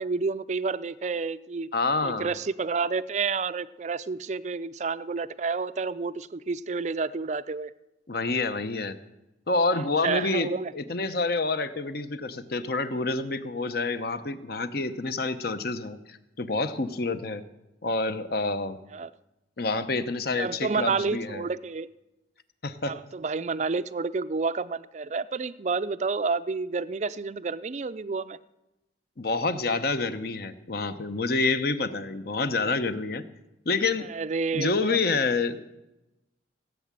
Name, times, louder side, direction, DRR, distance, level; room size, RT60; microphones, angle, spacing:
voice 1, 0.0-1.7 2.0-7.7 10.0-10.7 18.9-19.1 20.4-21.9 22.9-28.4 34.1-35.0, right 4 dB, 40° right, 15 dB, 0.4 m, -30 dB
voice 2, 1.7-2.3 8.1-9.0 9.5-17.4 17.8-18.8 19.6-21.5 22.6-22.9 29.2-33.2 33.7-34.1 34.5-35.6, left 3 dB, 55° left, 11 dB, 0.9 m, -28 dB
17.0 x 8.3 x 7.5 m, 0.95 s
head